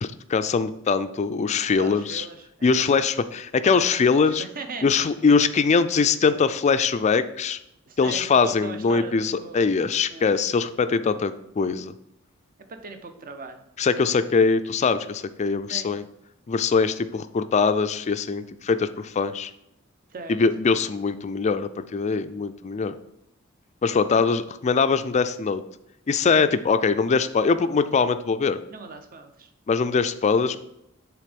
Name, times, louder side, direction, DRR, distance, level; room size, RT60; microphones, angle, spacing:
voice 1, 0.0-2.3 2.6-4.4 4.8-7.6 8.0-11.9 13.8-16.0 16.5-19.5 20.3-22.9 23.8-25.6 26.1-28.6 29.7-30.6, left 5 dB, 35° left, 12 dB, 0.3 m, -22 dB
voice 2, 1.8-2.8 4.2-4.9 7.9-9.7 10.1-10.4 12.7-13.6 15.7-15.9 20.1-20.4 28.7-29.5, right 3 dB, 45° right, 7 dB, 0.7 m, -39 dB
7.5 x 3.5 x 5.1 m, 0.81 s
head